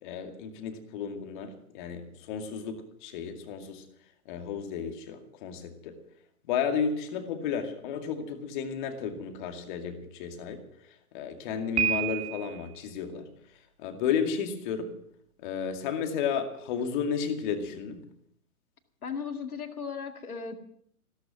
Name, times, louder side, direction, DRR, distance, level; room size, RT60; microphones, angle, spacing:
voice 1, 0.0-3.8 4.3-6.0 6.5-10.6 11.1-13.3 13.8-14.9 15.4-18.1, left 7 dB, 30° left, 6 dB, 2.3 m, -33 dB
Piano, 11.8-12.7, right 10 dB, 15° right, 2.3 m, -29 dB
voice 2, 19.0-20.6, left 6 dB, 70° left, 6 dB, 2.3 m, -36 dB
16.0 x 13.5 x 6.0 m, 0.71 s
figure-of-eight pair, 125°, 45 cm